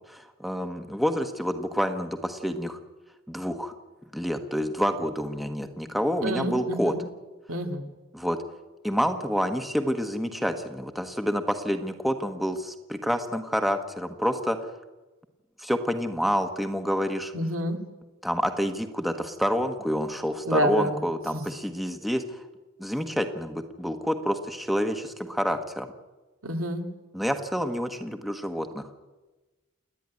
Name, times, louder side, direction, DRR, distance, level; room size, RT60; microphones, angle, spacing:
voice 1, 0.1-2.8 3.3-3.7 4.1-6.9 8.1-8.4 8.8-14.6 15.6-17.3 18.2-22.4 22.8-25.9 27.1-28.9, equal, ahead, 6 dB, 1.2 m, -28 dB
voice 2, 6.2-7.0 7.5-7.9 17.3-17.8 20.5-21.0 21.3-21.4 26.4-26.8, equal, 75° right, 4 dB, 2.4 m, -28 dB
29.0 x 10.5 x 9.6 m, 1.2 s
head